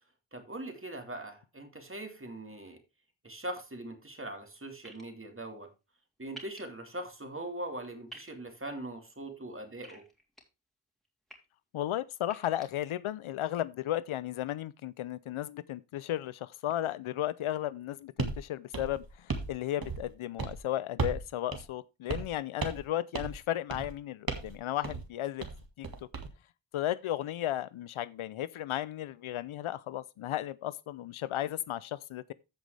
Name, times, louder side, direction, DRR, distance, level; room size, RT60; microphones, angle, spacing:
voice 1, 0.3-2.8 3.2-5.7 6.2-10.0, right 1 dB, 25° right, 2.5 m, -41 dB
sound 1, 4.8-5.0 6.4-6.6 8.1-8.3 9.8-10.4 11.1-11.4 12.2-12.7, right 2 dB, ahead, 3.3 m, -48 dB
voice 2, 11.7-25.4 25.8-25.9 26.7-32.3, left 12 dB, 85° left, 0.6 m, -34 dB
sound 2, 18.2-18.4 18.7-19.5 19.8-20.1 20.4-20.6 21.0-21.2 21.5-21.6 22.1-22.3 22.6-22.9 23.1-23.4 23.7-23.9 24.3-24.5 24.8-25.0 25.4-26.3, right 4 dB, 45° right, 1.9 m, -35 dB
15.0 x 5.3 x 3.3 m
wide cardioid pair, 70°, 48 cm